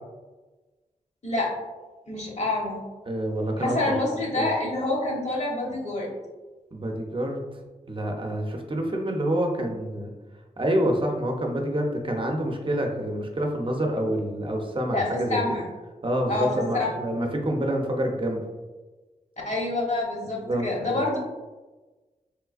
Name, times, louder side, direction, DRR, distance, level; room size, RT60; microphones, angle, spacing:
voice 1, 2.1-2.8 3.6-6.1 14.9-15.7 16.3-16.9 19.4-21.2, left 2 dB, 50° left, -2 dB, 1.0 m, -27 dB
voice 2, 3.1-3.9 4.4-4.5 6.7-7.4 7.9-10.1 10.6-15.4 16.0-18.4 20.4-21.0, right 1 dB, 35° right, 2 dB, 0.6 m, -27 dB
3.2 x 3.2 x 2.4 m, 1.2 s
cardioid pair, 60°, 15 cm